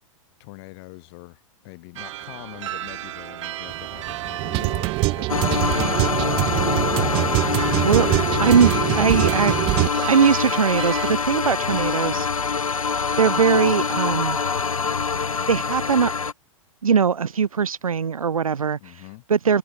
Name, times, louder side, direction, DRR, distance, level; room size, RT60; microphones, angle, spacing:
voice 1, 0.4-7.3 18.8-19.2, left 26 dB, 50° left, 5.1 m, -43 dB
sound 1, 2.0-11.1, right 14 dB, 60° right, 2.3 m, -35 dB
sound 2, 3.7-9.9, right 24 dB, 30° right, 0.4 m, -23 dB
sound 3, 5.3-16.3, left 5 dB, 90° left, 1.5 m, -24 dB
voice 2, 8.4-9.8 10.1-12.3 13.2-14.4 15.5-16.1 16.8-18.9 19.3-19.6, right 6 dB, 85° right, 1.0 m, -20 dB
hypercardioid pair, 105°, 17 cm